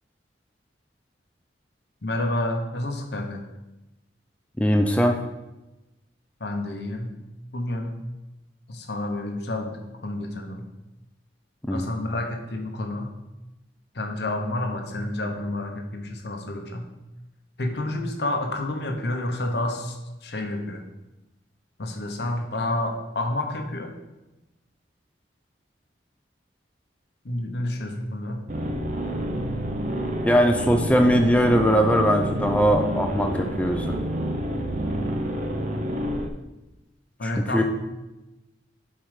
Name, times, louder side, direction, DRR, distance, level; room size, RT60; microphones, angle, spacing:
voice 1, 2.0-3.5 6.4-7.1 7.5-8.0 8.7-10.7 11.7-13.1 13.9-16.9 17.6-20.8 21.8-23.9 27.2-28.4 37.2-37.6, left 1 dB, 65° left, 4 dB, 1.0 m, -29 dB
voice 2, 4.6-5.2 11.7-11.9 29.4-29.5 30.2-34.0 37.2-37.6, equal, 5° left, 4 dB, 0.4 m, -20 dB
sound 1, 28.5-36.3, right 1 dB, 45° right, 0.6 m, -28 dB
7.4 x 4.7 x 4.9 m, 1.0 s
head